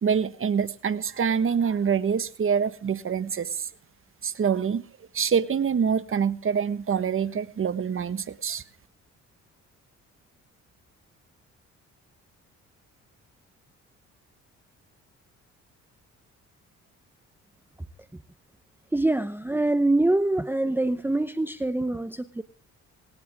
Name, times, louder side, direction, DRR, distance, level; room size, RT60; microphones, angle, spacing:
voice 1, 0.0-3.7 4.2-4.9 5.1-8.6, right 7 dB, 45° right, 13 dB, 1.3 m, -25 dB
voice 2, 18.9-22.4, right 2 dB, 5° right, 13 dB, 0.8 m, -24 dB
21.0 x 18.0 x 3.6 m, 0.38 s
cardioid pair, 90°, 30 cm